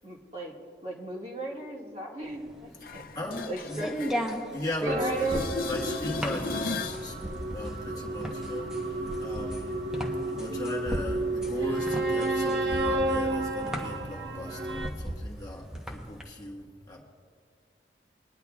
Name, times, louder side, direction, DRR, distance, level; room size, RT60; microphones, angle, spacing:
voice 1, 0.0-0.5 0.8-3.0 3.5-3.9 4.8-5.5, right 2 dB, 35° right, -4 dB, 1.8 m, -35 dB
sound 1, 2.3-16.2, equal, 5° right, 0.8 m, -36 dB
sound 2, 2.8-4.9 5.1-7.1 12.8-12.9, left 3 dB, 55° left, 0.6 m, -36 dB
voice 2, 2.8-3.9 4.5-5.1 5.6-9.8 10.3-17.0, left 1 dB, 20° left, -2 dB, 1.4 m, -38 dB
baker hall feedback experiment sample, 4.9-14.9, right 2 dB, 75° right, 1.0 m, -31 dB
23.5 x 10.5 x 2.3 m, 2.2 s
head